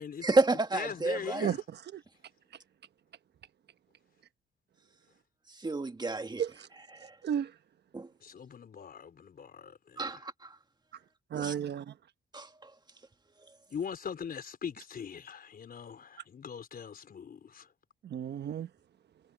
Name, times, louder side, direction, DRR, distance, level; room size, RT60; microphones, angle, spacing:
voice 1, 0.2-1.5 5.5-6.4 6.9-7.2 7.9-8.1 10.0-10.6 11.3-11.5 12.3-12.8 13.4-13.6, right 3 dB, 20° right, 1.8 m, -31 dB
voice 2, 0.7-1.6 8.2-10.0 13.7-17.7, left 7 dB, 50° left, 4.3 m, -41 dB
voice 3, 7.0-7.6 11.3-12.0 18.0-18.7, right 9 dB, 60° right, 1.2 m, -33 dB
cardioid pair, 90°, 20 cm